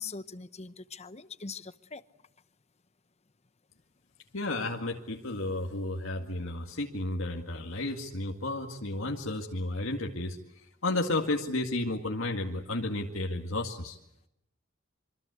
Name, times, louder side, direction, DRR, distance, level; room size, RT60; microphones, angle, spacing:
voice 1, 0.0-2.0, left 5 dB, 35° left, 13 dB, 1.0 m, -42 dB
voice 2, 4.3-10.4 10.8-14.0, left 2 dB, 75° left, 1 dB, 2.1 m, -32 dB
26.5 x 25.0 x 8.3 m, 0.82 s
head